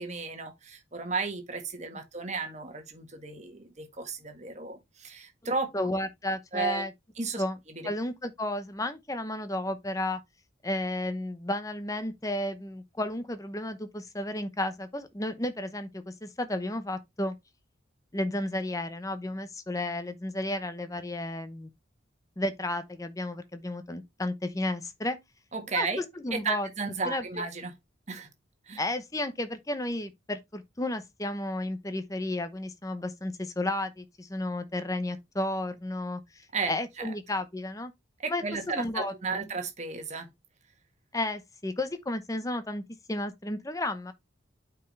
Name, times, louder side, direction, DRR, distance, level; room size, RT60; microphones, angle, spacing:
voice 1, 0.0-5.7 6.5-6.8 7.2-7.4 25.5-26.0 26.3-27.7 28.1-28.3 28.7-28.8 36.5-37.1 38.2-40.3, right 4 dB, 35° right, 1.5 m, -34 dB
voice 2, 5.7-6.9 7.4-7.6 7.8-10.2 10.6-17.3 18.1-21.7 22.4-25.2 25.7-26.7 27.1-27.4 28.8-37.9 38.3-38.4 38.7-39.5 41.1-42.8 43.1-44.1, left 1 dB, 15° left, 0.8 m, -33 dB
8.9 x 4.6 x 3.2 m
head